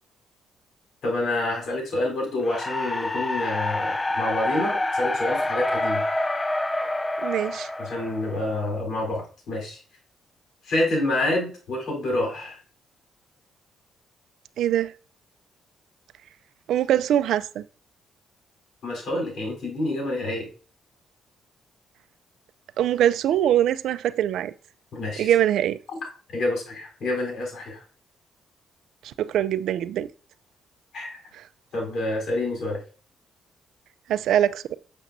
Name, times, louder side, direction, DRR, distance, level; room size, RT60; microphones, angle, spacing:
voice 1, 1.0-6.0 7.8-9.8 10.7-12.6 18.8-20.5 24.9-25.3 25.9-26.0 26.3-27.8 30.9-31.2 31.7-32.8, left 2 dB, 70° left, 3.8 m, -27 dB
sound 1, 2.4-8.6, left 2 dB, 20° left, 0.5 m, -27 dB
voice 2, 7.2-7.7 14.6-14.9 16.7-17.6 22.8-24.5 25.2-25.8 29.0-30.1 31.3-31.4 34.1-34.8, right 11 dB, 75° right, 0.4 m, -23 dB
7.3 x 6.8 x 2.7 m
cardioid pair, 90°, 0 cm